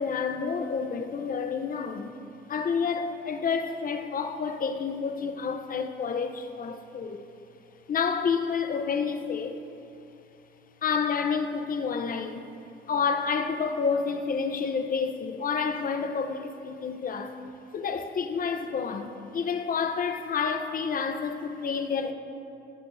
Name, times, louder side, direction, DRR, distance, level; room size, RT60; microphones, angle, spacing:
voice 1, 0.0-2.1 2.5-7.2 7.9-9.5 10.8-12.5 12.9-17.4 17.7-22.1, left 5 dB, 45° left, 7 dB, 0.7 m, -29 dB
18.0 x 6.6 x 2.7 m, 2.7 s
cardioid pair, 90°, 20 cm